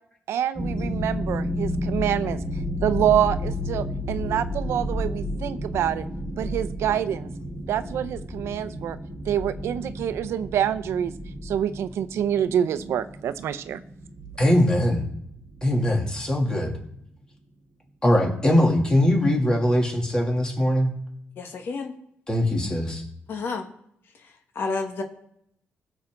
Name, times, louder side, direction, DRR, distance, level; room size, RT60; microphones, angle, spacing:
voice 1, 0.3-2.4 2.8-6.1 6.4-7.3 7.7-9.0 9.3-11.1 11.4-13.8, right 10 dB, 80° right, 12 dB, 0.6 m, -26 dB
sound 1, 0.5-16.5, left 1 dB, 15° right, 4.2 m, -32 dB
voice 2, 14.4-15.0 15.6-16.7 18.0-20.9 22.3-23.0, left 1 dB, 20° left, 0 dB, 2.8 m, -21 dB
voice 3, 21.4-21.9 23.3-23.6 24.5-25.0, left 4 dB, 60° left, 4 dB, 1.6 m, -29 dB
20.5 x 7.2 x 3.8 m, 0.72 s
cardioid pair, 130°, 4 cm